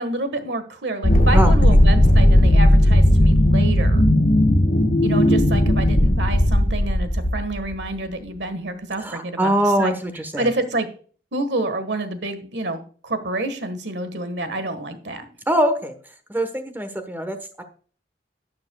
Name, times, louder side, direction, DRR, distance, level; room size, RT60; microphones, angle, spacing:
voice 1, 0.0-4.0 5.0-9.5 9.8-9.9 10.4-10.9 11.3-15.3, right 2 dB, 75° right, 10 dB, 1.5 m, -28 dB
sound 1, 1.0-7.8, left 1 dB, 55° left, 1.5 m, -16 dB
voice 2, 1.3-1.8 9.0-10.5 15.5-15.9 16.3-17.6, right 1 dB, 10° right, 8 dB, 1.2 m, -23 dB
11.5 x 9.7 x 2.3 m, 0.43 s
head